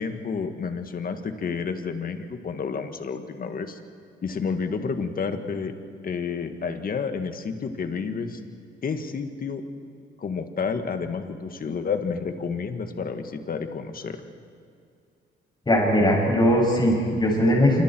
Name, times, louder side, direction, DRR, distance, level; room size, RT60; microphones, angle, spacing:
voice 1, 0.0-3.8 4.2-5.7 6.0-8.4 8.8-9.6 10.2-14.2, left 5 dB, 45° left, 7 dB, 1.9 m, -30 dB
voice 2, 15.7-17.8, equal, 20° left, -2 dB, 7.7 m, -20 dB
26.5 x 25.0 x 4.6 m, 2.3 s
cardioid pair, 90°, 20 cm